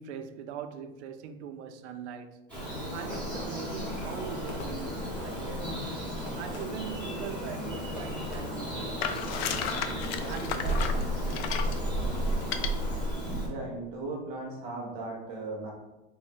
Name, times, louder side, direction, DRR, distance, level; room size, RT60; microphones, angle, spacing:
voice 1, 0.0-2.5 2.9-6.0 6.4-9.6 10.3-11.6, right 7 dB, 90° right, 0.5 m, -41 dB
Bird vocalization bird call bird song, 2.5-13.5, equal, 5° left, 0.7 m, -33 dB
Fireworks, 3.1-3.7 4.5-5.3 6.3-7.0 8.0-8.8 9.3-9.7 10.2-10.8, left 1 dB, 40° left, 0.8 m, -47 dB
sound 1, 9.0-11.8 12.4-12.7, left 8 dB, 70° left, 0.5 m, -33 dB
voice 2, 13.4-15.7, right 2 dB, 20° right, 0.4 m, -37 dB
3.8 x 2.1 x 4.1 m
supercardioid pair, 175°, 33 cm